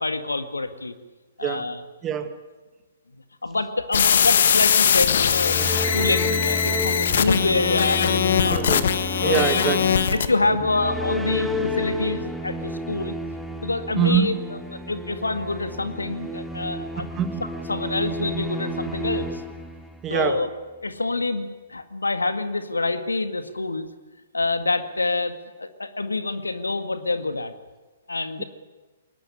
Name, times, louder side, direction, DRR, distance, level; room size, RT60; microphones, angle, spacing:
voice 1, 0.0-0.9 1.4-1.8 3.4-8.6 9.2-9.5 9.8-13.2 13.6-17.1 17.7-19.4 20.1-20.5 20.8-23.9 24.3-27.5 28.1-28.4, left 3 dB, 85° left, 10 dB, 1.9 m, -26 dB
voice 2, 1.4-1.7 2.0-2.4 8.5-8.9 9.2-10.0 14.0-14.4 17.2-17.4 20.0-20.5 28.4-28.5, right 8 dB, 20° right, 9 dB, 2.1 m, -25 dB
sound 1, 3.9-10.3, left 8 dB, 60° left, 1.6 m, -21 dB
sound 2, 5.1-20.3, left 1 dB, ahead, 2.3 m, -31 dB
22.0 x 19.5 x 9.8 m, 1.2 s
figure-of-eight pair, 120°, 0 cm